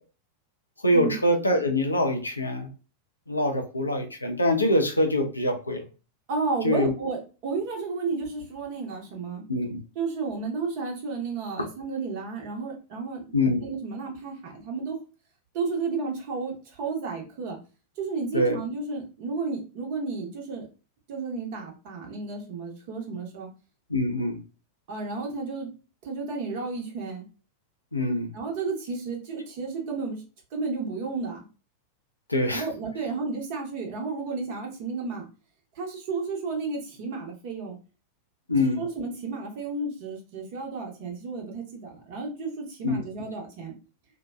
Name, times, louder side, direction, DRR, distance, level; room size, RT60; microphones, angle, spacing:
voice 1, 0.8-2.7 3.3-5.8 6.6-6.9 9.5-9.8 13.3-13.6 18.3-18.6 23.9-24.4 27.9-28.3 32.3-32.7 38.5-38.8 42.8-43.0, left 1 dB, 80° left, 0.4 m, -24 dB
voice 2, 6.3-9.4 9.9-13.2 13.6-15.0 15.5-17.6 18.0-20.7 21.1-23.5 24.9-25.7 26.0-27.2 28.3-30.2 30.5-31.4 32.5-35.3 35.7-37.8 38.8-43.7, right 4 dB, 45° right, 0.8 m, -32 dB
2.7 x 2.1 x 2.2 m
figure-of-eight pair, 90°, 0 cm